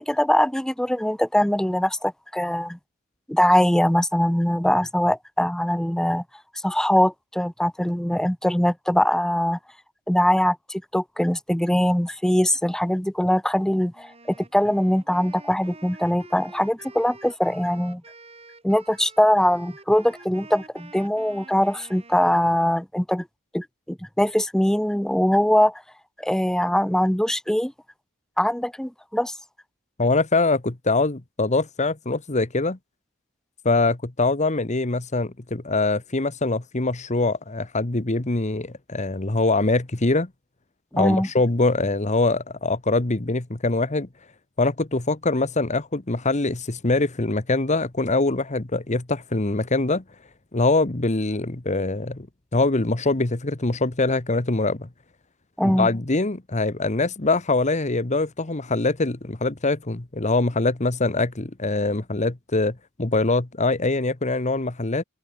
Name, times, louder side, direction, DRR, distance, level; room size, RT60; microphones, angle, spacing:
voice 1, 0.0-2.8 3.3-6.2 6.6-9.6 10.1-18.0 18.6-23.3 23.5-25.8 26.2-27.7 28.4-29.3 41.0-41.3 55.6-55.9, equal, 5° left, 0.5 m, -22 dB
Wind instrument woodwind instrument, 13.9-22.7, right 3 dB, 30° right, 5.8 m, -48 dB
voice 2, 30.0-32.8 33.6-40.3 40.9-44.1 44.6-50.0 50.5-52.3 52.5-54.9 55.6-65.0, left 3 dB, 35° left, 1.2 m, -23 dB
open air
head